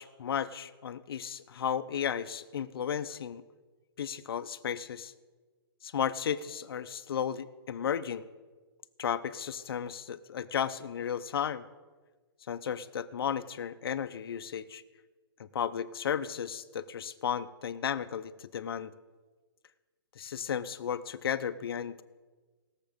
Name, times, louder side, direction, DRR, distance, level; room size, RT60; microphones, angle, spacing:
voice 1, 0.0-3.4 4.0-5.1 5.8-8.3 9.0-11.6 12.5-14.8 15.4-18.9 20.2-22.0, left 8 dB, 65° left, 11 dB, 0.7 m, -34 dB
19.5 x 7.3 x 5.2 m, 1.3 s
hypercardioid pair, 175°, 13 cm